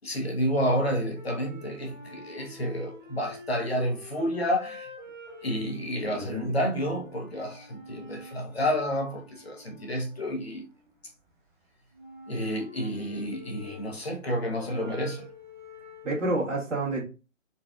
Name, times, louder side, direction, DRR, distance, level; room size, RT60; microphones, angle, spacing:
voice 1, 0.0-4.9 5.4-10.6 12.3-15.3, equal, 50° left, 0.8 m, -30 dB
sound 1, 1.1-11.3 11.9-16.3, equal, 35° right, 0.7 m, -47 dB
voice 2, 6.1-6.5 16.0-17.0, right 2 dB, 65° right, 1.6 m, -29 dB
3.9 x 2.2 x 2.4 m
hypercardioid pair, 175°, 40 cm